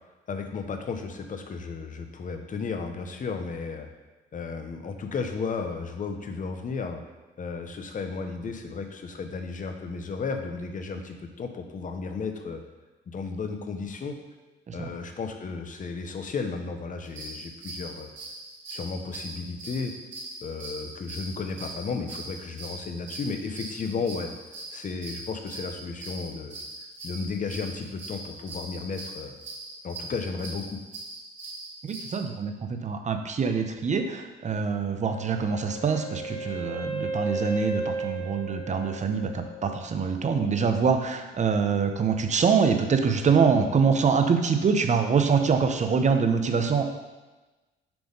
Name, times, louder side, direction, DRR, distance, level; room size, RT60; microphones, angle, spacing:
voice 1, 0.3-3.9 4.3-7.0 7.4-12.6 13.1-14.2 14.7-18.1 18.7-19.9 20.4-24.3 24.7-26.6 27.0-29.3 29.8-30.8 43.6-43.7, left 4 dB, 40° left, 6 dB, 0.8 m, -34 dB
sound 1, 17.0-32.2, right 2 dB, 70° right, 1.7 m, -41 dB
voice 2, 31.8-47.0, right 5 dB, 35° right, 6 dB, 0.7 m, -25 dB
Wind instrument woodwind instrument, 35.0-39.9, right 2 dB, 20° left, 1.2 m, -34 dB
6.0 x 3.4 x 5.3 m, 1.2 s
cardioid pair, 90°, 20 cm